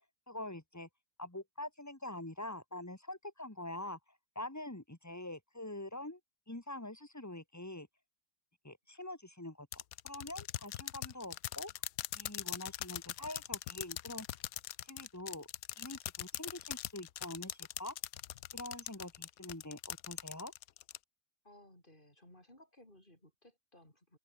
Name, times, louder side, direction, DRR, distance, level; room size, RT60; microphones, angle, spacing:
voice 1, 0.3-0.9 1.2-4.0 4.4-6.2 6.5-7.9 8.6-11.7 12.2-14.3 14.9-15.5 15.8-17.9 18.5-20.5, left 1 dB, 10° left, 2.2 m, -45 dB
sound 1, 9.7-21.0, left 13 dB, 80° left, 1.1 m, -41 dB
voice 2, 21.4-24.2, left 1 dB, 35° left, 8.1 m, -60 dB
open air
omnidirectional pair, 1.5 m